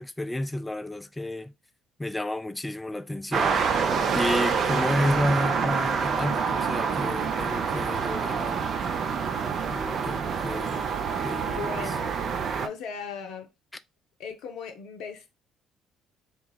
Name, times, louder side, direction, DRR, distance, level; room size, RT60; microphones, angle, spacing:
voice 1, 0.0-1.5 2.0-3.6 4.1-8.7 9.7-10.9 11.2-11.9, left 1 dB, 15° left, 0.4 m, -31 dB
sound 1, 3.3-12.7, right 6 dB, 50° right, 0.5 m, -27 dB
voice 2, 11.4-12.2 12.6-13.5 14.2-15.4, left 6 dB, 65° left, 0.5 m, -38 dB
3.0 x 2.3 x 3.9 m
figure-of-eight pair, 50°, 0 cm